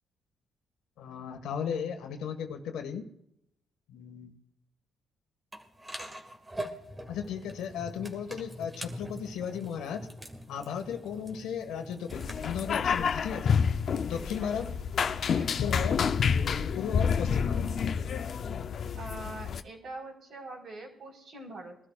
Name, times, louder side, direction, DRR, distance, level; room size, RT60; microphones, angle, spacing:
voice 1, 1.0-3.0 3.9-4.3 7.1-10.1 10.5-13.6 14.0-14.7 15.6-16.1 16.7-17.7, left 7 dB, 90° left, 5 dB, 1.7 m, -35 dB
sound 1, 5.5-12.6, right 1 dB, 15° right, 2.1 m, -43 dB
sound 2, 12.1-19.6, left 6 dB, 55° left, 0.7 m, -29 dB
voice 2, 13.9-14.7 15.3-15.6 18.9-21.8, right 2 dB, 60° right, 0 dB, 4.5 m, -44 dB
23.0 x 12.5 x 2.5 m, 0.76 s
cardioid pair, 90°, 0 cm